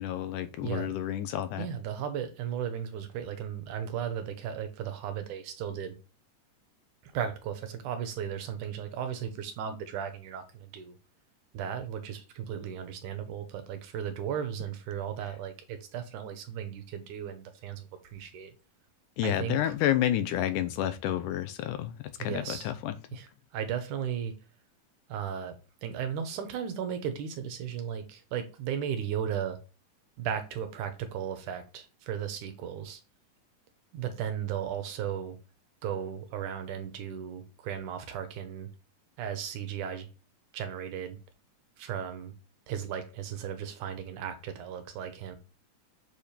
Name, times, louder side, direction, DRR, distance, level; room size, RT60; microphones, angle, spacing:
voice 1, 0.0-1.7 19.2-23.0, left 12 dB, 85° left, 11 dB, 2.3 m, -30 dB
voice 2, 1.6-5.9 7.0-11.0 11.5-18.5 19.2-19.7 22.3-22.7 23.1-24.3 25.1-25.6 25.8-29.6 30.2-33.0 33.9-35.4 35.8-38.7 39.2-40.1 40.5-41.2 41.8-42.3 42.7-45.4, right 8 dB, 80° right, 8 dB, 2.5 m, -35 dB
7.2 x 3.4 x 4.4 m, 0.31 s
omnidirectional pair, 3.6 m